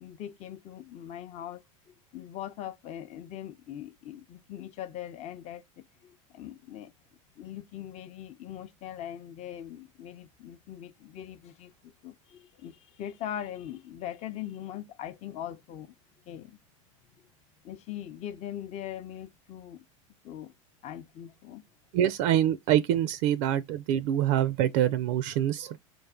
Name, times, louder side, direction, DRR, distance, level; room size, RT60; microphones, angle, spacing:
voice 1, 0.0-6.9 7.4-15.9 16.3-16.6 17.2-17.3 17.6-19.8 20.2-20.5 20.8-21.6, left 11 dB, 40° left, 0.5 m, -41 dB
voice 2, 21.9-25.8, right 11 dB, 60° right, 0.4 m, -25 dB
3.9 x 2.5 x 3.6 m
hypercardioid pair, 100°, 17 cm